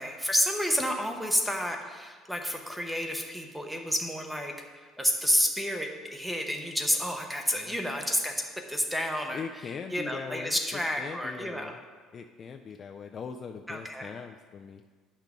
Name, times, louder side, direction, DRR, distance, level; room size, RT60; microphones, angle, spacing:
voice 1, 0.0-8.3 8.7-9.4 9.9-11.7 13.7-14.1, equal, ahead, 3 dB, 0.7 m, -30 dB
voice 2, 9.3-11.8 12.1-14.8, left 6 dB, 30° left, 5 dB, 0.3 m, -41 dB
10.0 x 5.7 x 3.6 m, 1.5 s
cardioid pair, 160°, 0 cm